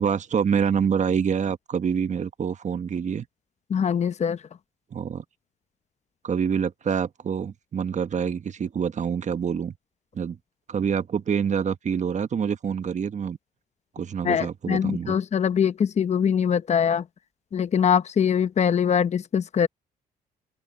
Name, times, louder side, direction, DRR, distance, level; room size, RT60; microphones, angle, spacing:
voice 1, 0.0-3.3 4.9-5.2 6.2-9.7 10.1-10.4 10.7-13.4 13.9-15.1, right 7 dB, 45° right, 1.4 m, -26 dB
voice 2, 3.7-4.4 14.2-17.1 17.5-19.7, left 7 dB, 40° left, 0.8 m, -23 dB
open air
cardioid pair, 80°, 17 cm